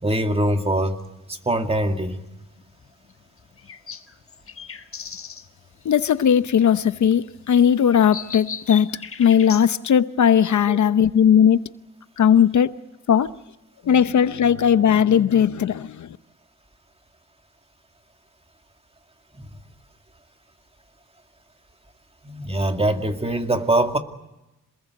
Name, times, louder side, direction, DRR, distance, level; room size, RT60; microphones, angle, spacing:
voice 1, 0.0-1.0 1.3-2.2 10.7-10.8 22.2-24.0, right 1 dB, 20° right, 2.3 m, -23 dB
sound 1, 1.0-9.7, left 6 dB, 45° left, 1.5 m, -39 dB
voice 2, 5.8-8.9 9.2-11.7 12.2-12.7 13.1-13.3 13.9-16.1, left 8 dB, 65° left, 0.9 m, -18 dB
27.0 x 20.5 x 8.3 m
cardioid pair, 105°, 32 cm